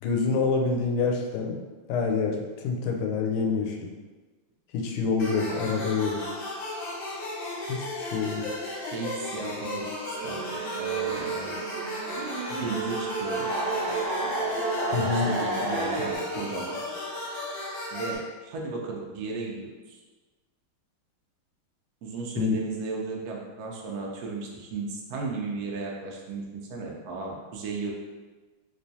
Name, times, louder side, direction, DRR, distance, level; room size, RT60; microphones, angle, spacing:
voice 1, 0.0-1.6 1.9-3.9 4.7-6.2 7.7-8.4 14.9-15.3 22.4-22.5, left 4 dB, 85° left, 2 dB, 1.4 m, -27 dB
sound 1, 5.2-18.2, left 2 dB, 65° left, 1.3 m, -35 dB
voice 2, 8.9-9.8 10.2-10.4 10.8-11.6 12.5-13.5 15.1-16.8 17.9-20.0 22.0-27.9, right 3 dB, 75° right, -1 dB, 0.9 m, -35 dB
sound 2, 10.2-16.2, right 3 dB, 50° right, 0.8 m, -30 dB
3.4 x 3.0 x 2.7 m, 1.3 s
omnidirectional pair, 2.3 m